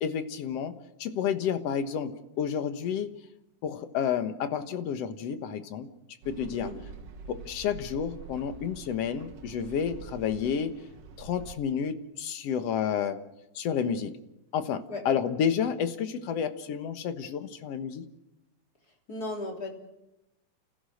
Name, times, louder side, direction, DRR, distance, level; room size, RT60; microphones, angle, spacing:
voice 1, 0.0-3.1 3.6-5.9 6.3-6.7 7.3-10.8 11.2-13.2 13.6-14.2 14.5-18.1, left 7 dB, 60° left, 9 dB, 2.2 m, -30 dB
sound 1, 6.2-11.5, right 5 dB, 60° right, 2.5 m, -46 dB
voice 2, 19.1-19.7, left 2 dB, 30° left, 2 dB, 4.0 m, -35 dB
29.5 x 15.5 x 6.5 m, 0.90 s
omnidirectional pair, 3.4 m